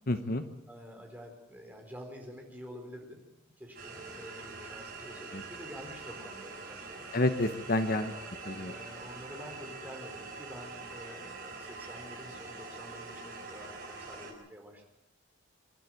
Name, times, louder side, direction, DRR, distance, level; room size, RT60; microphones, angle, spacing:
voice 1, 0.1-0.4 5.3-5.4 7.1-8.1 8.5-8.7, left 2 dB, 45° left, 8 dB, 1.0 m, -29 dB
voice 2, 0.7-3.2 3.6-7.1 8.0-14.8, equal, 10° right, 2 dB, 4.2 m, -48 dB
sound 1, 3.7-14.3, right 3 dB, 45° right, 6.0 m, -44 dB
25.0 x 12.5 x 9.4 m, 0.89 s
head